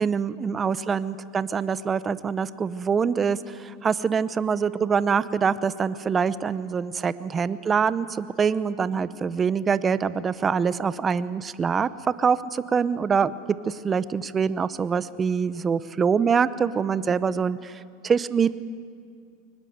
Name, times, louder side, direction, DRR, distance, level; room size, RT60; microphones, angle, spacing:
voice 1, 0.0-13.3 13.7-17.7 18.0-18.5, right 6 dB, 25° right, 16 dB, 0.7 m, -24 dB
22.5 x 20.0 x 7.9 m, 2.3 s
supercardioid pair, 120°, 0 cm